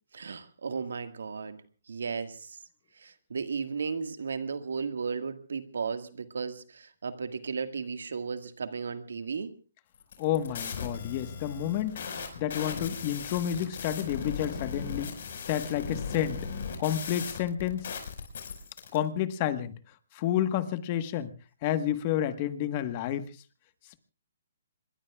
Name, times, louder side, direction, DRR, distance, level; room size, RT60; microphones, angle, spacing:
voice 1, 0.1-1.6 1.9-2.6 3.0-9.5, right 5 dB, 85° right, 9 dB, 1.7 m, -35 dB
sound 1, 10.0-19.0, left 6 dB, 60° left, 5.1 m, -38 dB
voice 2, 10.2-12.0 12.4-15.1 15.4-16.4 16.8-17.9 18.9-19.7 20.1-21.3 21.6-23.3, left 11 dB, 35° left, 11 dB, 1.3 m, -30 dB
26.0 x 22.0 x 2.4 m, 0.35 s
hypercardioid pair, 155°, 0 cm